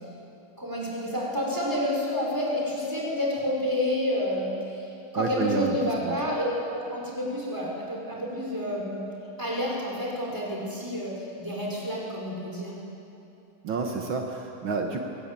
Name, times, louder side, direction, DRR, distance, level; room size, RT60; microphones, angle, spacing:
voice 1, 0.6-9.0 9.4-12.7, left 1 dB, 10° right, -3 dB, 5.5 m, -29 dB
voice 2, 5.2-6.2 13.6-15.0, right 4 dB, 70° right, 2 dB, 2.2 m, -29 dB
21.5 x 19.5 x 9.1 m, 2.8 s
omnidirectional pair, 2.3 m